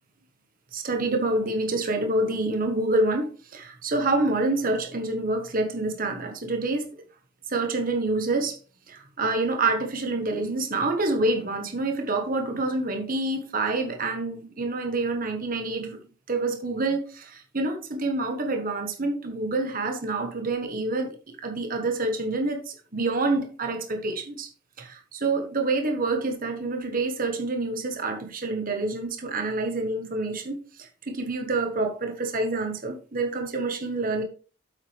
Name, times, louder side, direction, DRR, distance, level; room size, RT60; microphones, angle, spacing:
voice 1, 0.7-6.9 7.5-8.6 8.9-16.0 16.3-24.5 24.8-34.2, right 2 dB, 45° right, 1.3 m, -27 dB
8.5 x 7.6 x 3.3 m
head